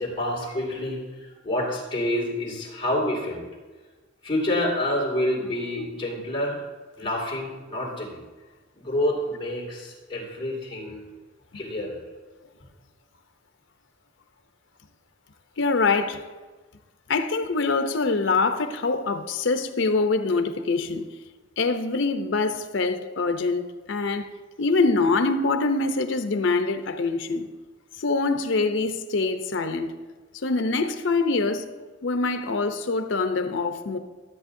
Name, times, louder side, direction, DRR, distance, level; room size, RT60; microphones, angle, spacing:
voice 1, 0.0-3.5 4.2-6.6 7.0-8.2 8.7-11.0 11.5-12.0, left 1 dB, 25° left, 2.3 m, -28 dB
voice 2, 15.6-16.2 17.1-21.1 21.6-24.3 24.6-27.5 27.9-29.9 30.4-31.6 32.0-34.0, left 3 dB, 70° left, 0.6 m, -24 dB
13.0 x 8.2 x 2.6 m
head